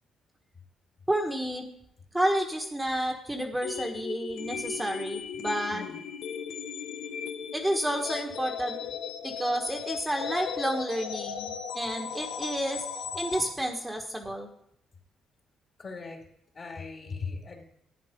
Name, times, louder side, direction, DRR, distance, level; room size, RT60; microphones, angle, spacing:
voice 1, 1.1-1.7 2.1-5.8 7.5-8.8 9.2-12.8 13.1-14.5, right 1 dB, 10° right, 3 dB, 1.5 m, -30 dB
sound 1, 3.6-13.5, left 7 dB, 85° left, 1.0 m, -37 dB
voice 2, 5.7-6.1 15.8-16.3 16.5-17.6, left 4 dB, 40° left, 3 dB, 2.5 m, -39 dB
11.5 x 9.2 x 5.2 m, 0.73 s
cardioid pair, 90°, 0 cm